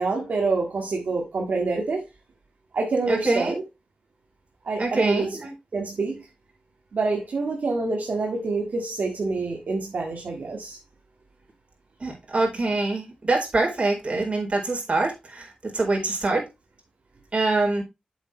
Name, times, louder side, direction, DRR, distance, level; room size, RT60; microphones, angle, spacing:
voice 1, 0.0-2.0 2.7-3.6 4.6-5.4 5.7-6.2 6.9-10.8, right 3 dB, 75° right, 2.0 m, -26 dB
voice 2, 3.1-3.6 4.8-5.5 12.0-16.5 17.3-17.8, right 2 dB, 45° right, 4.3 m, -24 dB
8.1 x 7.3 x 3.2 m
cardioid pair, 60°, 3 cm